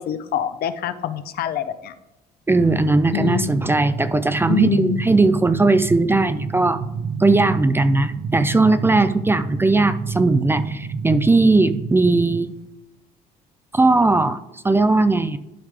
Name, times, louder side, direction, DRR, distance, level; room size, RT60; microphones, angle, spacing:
voice 1, 0.0-1.9 3.1-3.9 4.4-5.1, left 9 dB, 65° left, 11 dB, 0.7 m, -25 dB
voice 2, 2.5-6.8 7.2-12.5 13.7-15.4, right 3 dB, 15° right, 12 dB, 0.4 m, -18 dB
sound 1, 3.2-12.4, right 5 dB, 50° right, 0.8 m, -29 dB
11.5 x 4.9 x 3.4 m, 0.96 s
cardioid pair, 110°, 17 cm